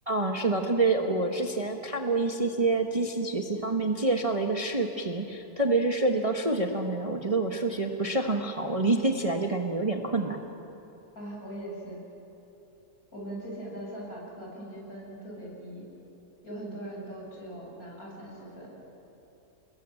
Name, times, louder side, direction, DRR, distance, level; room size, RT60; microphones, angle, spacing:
voice 1, 0.1-10.4, right 3 dB, 20° right, 3 dB, 1.3 m, -27 dB
voice 2, 11.1-12.0 13.1-15.9 16.4-18.7, right 1 dB, 55° left, -3 dB, 8.4 m, -40 dB
29.5 x 21.0 x 9.1 m, 2.9 s
omnidirectional pair, 1.8 m